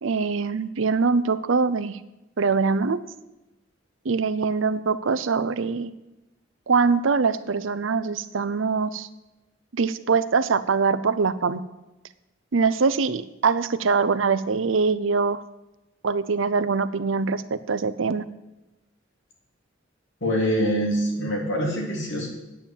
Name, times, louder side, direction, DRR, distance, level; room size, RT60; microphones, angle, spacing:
voice 1, 0.0-2.0 2.4-3.0 4.0-5.9 6.7-9.1 9.7-11.6 12.5-15.4 16.0-18.2, right 4 dB, 70° right, 13 dB, 0.6 m, -23 dB
voice 2, 20.2-22.3, equal, 65° left, -1 dB, 3.1 m, -24 dB
9.3 x 8.7 x 7.3 m, 1.0 s
head